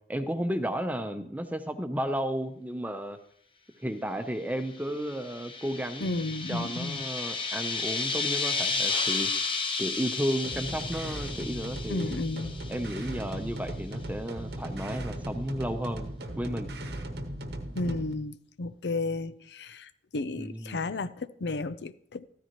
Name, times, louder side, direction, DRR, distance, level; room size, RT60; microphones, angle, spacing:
voice 1, 0.1-3.2 3.8-6.2 6.5-9.3 9.8-12.2 12.7-16.1 16.4-16.7 17.8-18.0 20.4-20.8, equal, 10° right, 0.7 m, -33 dB
sound 1, 4.8-13.1, left 4 dB, 30° left, 1.0 m, -32 dB
voice 2, 6.0-7.0 11.9-12.5 17.8-19.9 20.1-22.3, left 2 dB, 80° left, 0.5 m, -33 dB
sound 2, 10.4-18.1, right 1 dB, 75° right, 1.1 m, -37 dB
14.0 x 13.0 x 3.0 m
head